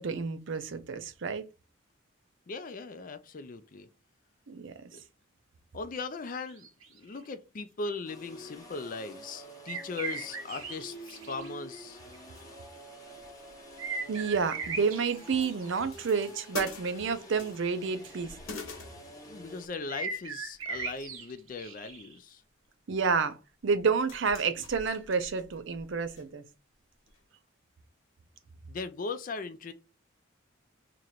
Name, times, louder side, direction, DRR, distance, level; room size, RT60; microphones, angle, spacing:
voice 1, 0.0-1.4 4.5-4.7 14.1-18.3 22.9-23.4 23.6-26.4, right 5 dB, 60° right, 0.5 m, -29 dB
voice 2, 2.5-3.9 4.9-5.0 5.7-12.0 19.3-22.4 28.7-29.7, left 4 dB, 40° left, 0.4 m, -39 dB
sound 1, 6.4-7.2 9.7-11.5 11.7-11.8 12.1-12.2 13.8-16.1 16.4-16.5 19.9-22.1, right 4 dB, 85° right, 0.8 m, -38 dB
sound 2, 8.1-19.7, right 1 dB, 15° left, 0.8 m, -48 dB
sound 3, 11.9-12.8 13.1-14.4 14.7-17.9 18.2-19.6 20.4-21.2 21.5-22.0 23.0-23.1 23.7-26.2 26.5-26.6 27.1-27.2, left 4 dB, 80° left, 1.1 m, -47 dB
3.0 x 2.5 x 4.4 m
head